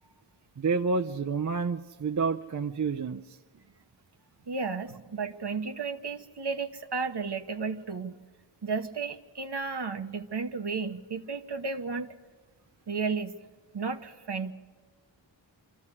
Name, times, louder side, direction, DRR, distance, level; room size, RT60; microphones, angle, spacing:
voice 1, 0.6-3.2, right 4 dB, 40° right, 7 dB, 0.6 m, -29 dB
voice 2, 4.5-8.2 8.6-12.1 12.9-13.3 13.7-14.5, right 4 dB, 60° right, 8 dB, 1.1 m, -33 dB
25.0 x 14.0 x 9.8 m, 1.4 s
wide cardioid pair, 55°, 46 cm